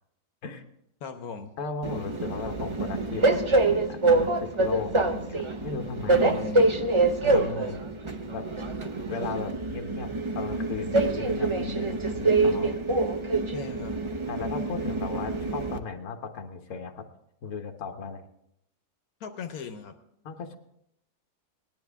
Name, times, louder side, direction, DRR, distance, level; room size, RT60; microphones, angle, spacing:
voice 1, 1.0-1.5 6.1-6.7 7.3-7.8 13.5-13.9 19.2-19.9, left 5 dB, 80° left, 6 dB, 1.3 m, -39 dB
voice 2, 1.6-6.4 7.2-7.9 8.3-8.5 9.1-12.7 14.3-17.0 17.4-18.2 20.2-20.6, left 4 dB, 60° left, 5 dB, 1.4 m, -36 dB
Train, 1.8-15.8, right 2 dB, 30° right, 0.5 m, -26 dB
18.0 x 10.5 x 3.5 m, 0.77 s
omnidirectional pair, 1.5 m